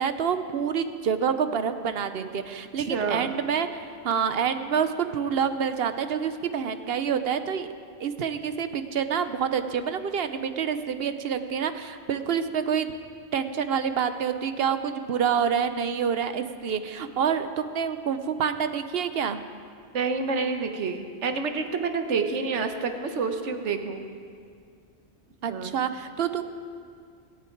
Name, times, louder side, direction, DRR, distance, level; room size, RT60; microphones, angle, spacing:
voice 1, 0.0-7.7 8.0-12.9 13.3-19.4 25.4-26.6, right 7 dB, 65° right, 10 dB, 0.9 m, -27 dB
voice 2, 2.8-3.4 19.9-24.1 25.5-25.7, right 4 dB, 85° right, 7 dB, 1.3 m, -28 dB
24.0 x 8.5 x 4.6 m, 2.2 s
omnidirectional pair, 1.2 m